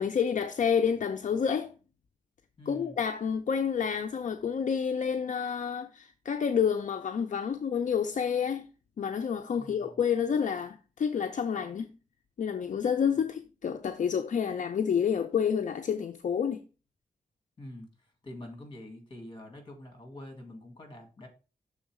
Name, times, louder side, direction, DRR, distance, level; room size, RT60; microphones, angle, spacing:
voice 1, 0.0-1.7 2.7-8.6 9.0-11.9 12.4-16.6, left 7 dB, 65° left, 0.5 m, -29 dB
voice 2, 2.6-3.0 9.6-10.0 17.6-21.3, left 1 dB, 35° left, 2.0 m, -46 dB
6.4 x 3.8 x 4.7 m
wide cardioid pair, 120°, 14 cm